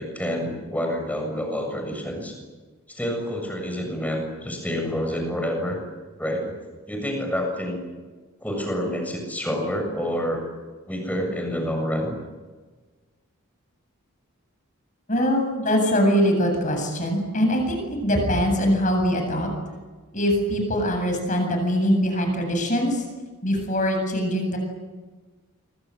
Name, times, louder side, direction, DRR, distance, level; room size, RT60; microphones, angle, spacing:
voice 1, 0.0-2.3 2.9-5.8 6.2-6.5 6.9-7.8 8.4-10.4 10.9-12.1, equal, 5° left, 3 dB, 7.2 m, -28 dB
voice 2, 15.1-19.5 20.1-23.0 23.4-24.6, equal, 35° left, 4 dB, 7.9 m, -22 dB
27.0 x 24.0 x 8.0 m, 1.4 s
head